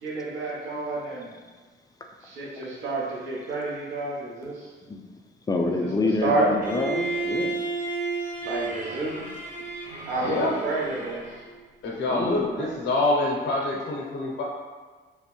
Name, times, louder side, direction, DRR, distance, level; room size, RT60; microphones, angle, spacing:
voice 1, 0.0-1.3 2.2-4.7 5.6-5.9 6.2-6.5 8.4-9.2 10.1-11.4 12.5-12.7, right 2 dB, 80° right, -4 dB, 0.7 m, -30 dB
voice 2, 5.5-7.6 12.1-12.5, left 3 dB, 20° left, 2 dB, 0.3 m, -27 dB
Bowed string instrument, 6.6-11.5, right 3 dB, 45° right, 0.6 m, -32 dB
voice 3, 10.2-10.6 11.8-14.4, left 2 dB, 65° left, -2 dB, 0.6 m, -26 dB
3.0 x 2.0 x 2.9 m, 1.4 s
cardioid pair, 90°, 20 cm